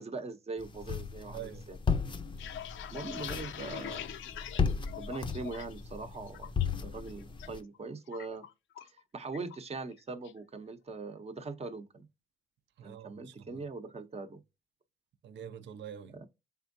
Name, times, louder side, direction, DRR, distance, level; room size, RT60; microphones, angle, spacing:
voice 1, 0.0-1.8 2.9-4.2 4.9-6.6 6.8-8.4 9.1-12.1 12.8-14.4 16.1-16.3, right 3 dB, 30° right, 0.8 m, -41 dB
sound 1, 0.6-7.6, left 6 dB, 25° left, 0.6 m, -35 dB
voice 2, 1.3-1.6 12.8-13.5 15.2-16.3, right 9 dB, 65° right, 0.6 m, -45 dB
sound 2, 2.1-5.8 6.1-6.7 7.1-7.5 7.7-9.0 9.3-9.6 9.9-10.4, left 10 dB, 75° left, 0.5 m, -43 dB
4.3 x 3.5 x 2.6 m
cardioid pair, 90°, 20 cm